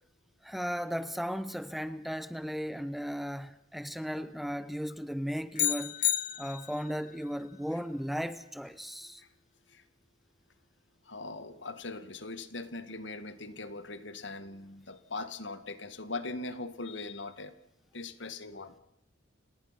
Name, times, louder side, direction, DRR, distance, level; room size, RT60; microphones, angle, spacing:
voice 1, 0.4-5.9 6.4-9.2, equal, ahead, 0.7 m, -36 dB
sound 1, 5.6-7.0, left 12 dB, 45° left, 0.9 m, -30 dB
voice 2, 11.1-17.5 17.9-18.8, left 3 dB, 70° left, 1.9 m, -40 dB
30.0 x 18.5 x 6.0 m
head